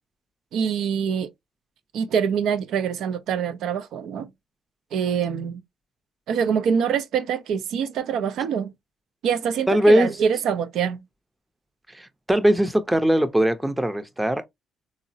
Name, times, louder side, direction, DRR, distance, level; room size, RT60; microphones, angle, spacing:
voice 1, 0.5-1.3 1.9-4.3 4.9-5.6 6.3-8.7 9.2-11.0, right 7 dB, 80° right, 0.4 m, -25 dB
voice 2, 9.7-10.1 11.9-14.5, right 1 dB, 10° right, 0.5 m, -20 dB
3.7 x 2.0 x 2.6 m
cardioid pair, 90°, 0 cm